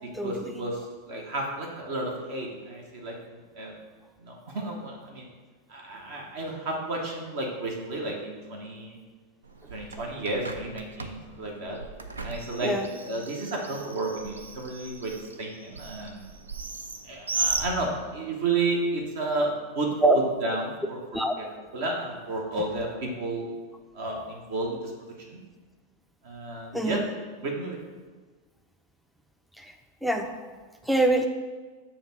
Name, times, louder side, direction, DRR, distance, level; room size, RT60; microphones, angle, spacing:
voice 1, 0.0-3.2 3.5-3.8 4.2-5.3 5.7-9.0 9.7-11.8 12.2-12.7 13.0-16.2 17.0-19.9 20.4-21.4 21.7-23.5 23.9-24.9 25.2-25.4 26.2-27.0 27.4-27.8, right 2 dB, 55° right, 0 dB, 1.0 m, -32 dB
Bird, 9.4-18.3, right 3 dB, 75° right, 0.4 m, -36 dB
voice 2, 26.7-27.0 29.6-29.7 30.0-30.3 30.9-31.3, right 2 dB, ahead, 5 dB, 0.4 m, -24 dB
7.0 x 2.9 x 5.7 m, 1.4 s
figure-of-eight pair, 90°, 0 cm